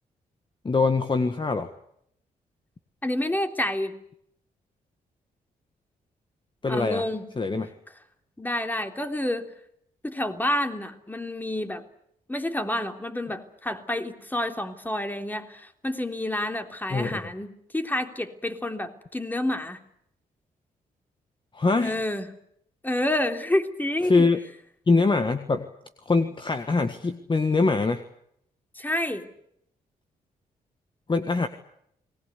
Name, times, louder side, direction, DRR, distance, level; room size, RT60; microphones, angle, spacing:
voice 1, 0.6-1.7 6.6-7.0 7.4-7.7 16.9-17.2 21.5-22.0 24.0-24.4 24.9-25.7 26.0-28.0 31.1-31.5, left 3 dB, 30° left, 7 dB, 1.7 m, -23 dB
voice 2, 3.0-3.9 6.7-7.3 8.4-9.5 10.0-11.8 12.3-19.8 21.8-22.2 22.8-24.3 28.7-29.3, left 1 dB, 10° left, 6 dB, 3.3 m, -29 dB
29.5 x 20.0 x 8.4 m, 0.74 s
cardioid pair, 75°, 16 cm